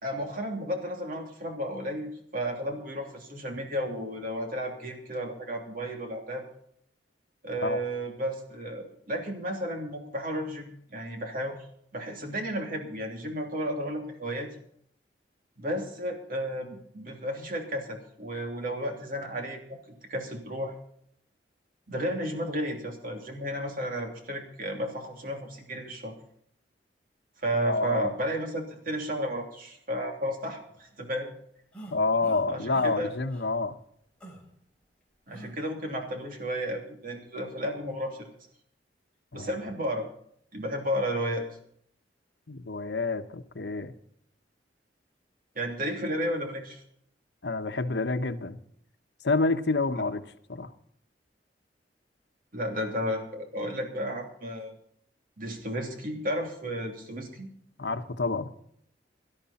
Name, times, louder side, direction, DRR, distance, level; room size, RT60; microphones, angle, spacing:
voice 1, 0.0-6.4 7.4-11.6 11.9-14.5 15.6-20.7 21.9-26.1 27.4-31.3 32.5-33.1 35.3-38.3 39.3-40.1 40.5-41.4 45.5-46.8 52.5-54.7 55.4-57.5, equal, 55° right, 2 dB, 3.0 m, -33 dB
voice 2, 27.7-28.1 31.9-33.8 39.3-39.5 42.5-43.9 47.4-48.6 49.2-50.2 50.5-50.7 57.8-58.5, left 3 dB, 70° left, 9 dB, 1.0 m, -28 dB
sound 1, 31.7-32.4 32.7-32.9 33.3-33.5 34.2-34.4 35.3-35.5, right 1 dB, 5° left, 4.1 m, -45 dB
17.5 x 12.0 x 4.2 m, 0.68 s
head